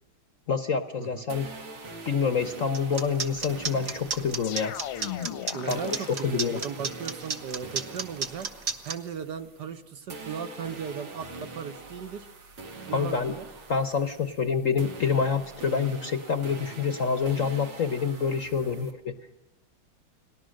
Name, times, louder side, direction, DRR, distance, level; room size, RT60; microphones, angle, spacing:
voice 1, 0.5-1.5 2.1-4.8 5.7-6.0 6.2-6.6 12.9-13.3 13.7-19.2, left 6 dB, 50° left, 10 dB, 1.0 m, -27 dB
sound 1, 1.3-9.8 10.1-18.9, right 3 dB, 80° right, 3.1 m, -44 dB
sound 2, 2.7-8.9, right 5 dB, 40° right, 1.3 m, -32 dB
sound 3, 4.4-6.7, left 10 dB, 80° left, 1.9 m, -37 dB
voice 2, 5.5-8.5 8.8-12.3 12.9-13.5 18.6-18.9, right 7 dB, 60° right, 9 dB, 1.5 m, -37 dB
30.0 x 18.5 x 6.5 m, 0.91 s
omnidirectional pair, 2.3 m